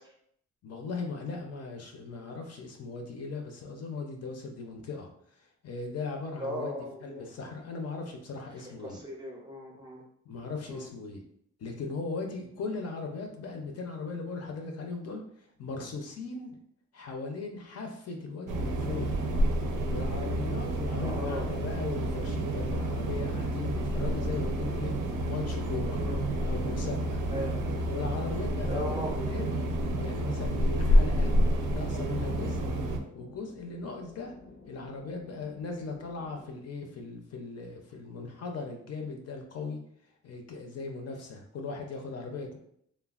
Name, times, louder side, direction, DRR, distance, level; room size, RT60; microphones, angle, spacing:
voice 1, 0.6-6.7 7.0-9.0 10.3-11.2 11.6-16.6 16.9-19.3 19.9-24.9 25.3-26.0 26.4-27.2 27.9-31.3 31.7-32.6 33.1-34.3 34.7-39.8 40.2-42.6, left 4 dB, 55° left, 3 dB, 0.5 m, -38 dB
voice 2, 6.4-7.2 8.8-10.0 10.7-10.9 21.0-21.5 26.0-26.2 27.3-27.7 28.7-29.4, equal, 15° right, -2 dB, 0.4 m, -37 dB
sound 1, 18.5-33.0, equal, 80° right, 0.5 m, -29 dB
sound 2, 22.5-36.5, left 2 dB, 90° left, 0.7 m, -52 dB
3.2 x 2.2 x 2.3 m, 0.68 s
wide cardioid pair, 170°, 31 cm